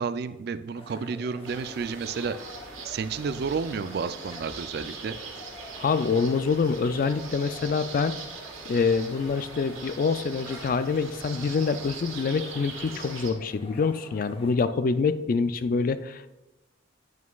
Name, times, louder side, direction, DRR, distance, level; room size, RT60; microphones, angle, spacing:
voice 1, 0.0-2.4 2.8-5.2, right 5 dB, 50° right, 12 dB, 0.3 m, -31 dB
sound 1, 0.7-14.5, left 1 dB, 30° left, 0.8 m, -47 dB
sound 2, 1.4-13.3, right 4 dB, 85° right, 1.4 m, -42 dB
voice 2, 5.8-8.2 8.7-16.3, left 5 dB, 45° left, 12 dB, 0.3 m, -26 dB
sound 3, 8.6-9.1 10.5-11.6 12.1-12.2 12.8-13.1, right 2 dB, 10° right, 2.1 m, -51 dB
9.2 x 8.3 x 2.3 m, 1.0 s
head